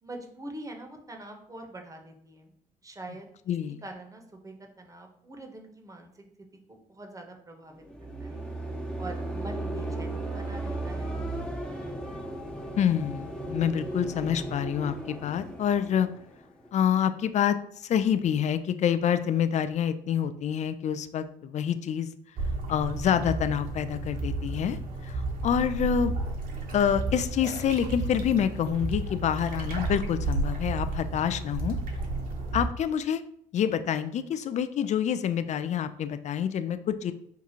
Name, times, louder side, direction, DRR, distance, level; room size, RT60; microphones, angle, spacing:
voice 1, 0.0-2.5 2.8-3.6 3.8-8.4 9.0-11.2, right 1 dB, 20° right, 3 dB, 0.9 m, -44 dB
voice 2, 3.5-3.8 12.8-16.1 16.7-17.6 17.8-22.1 22.7-26.2 26.7-31.8 32.5-33.2 33.5-37.1, left 8 dB, 40° left, 12 dB, 0.4 m, -27 dB
sound 1, 7.8-16.8, right 1 dB, 5° left, 0.8 m, -36 dB
sound 2, 22.4-32.7, right 2 dB, 50° right, 0.9 m, -32 dB
5.7 x 2.4 x 2.8 m, 0.68 s
hypercardioid pair, 55°, 18 cm